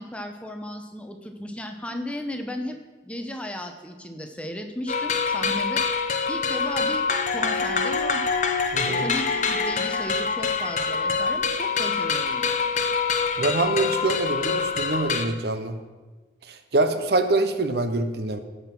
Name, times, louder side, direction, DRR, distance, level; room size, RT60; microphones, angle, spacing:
voice 1, 0.0-2.8 3.0-5.8 6.3-8.3 8.9-12.5, equal, 5° left, 5 dB, 0.8 m, -35 dB
sound 1, 4.9-15.3, left 5 dB, 40° left, 0.7 m, -25 dB
voice 2, 8.7-9.1 13.4-15.8 16.5-18.4, right 2 dB, 60° right, 9 dB, 0.8 m, -25 dB
16.5 x 5.6 x 6.0 m, 1.3 s
head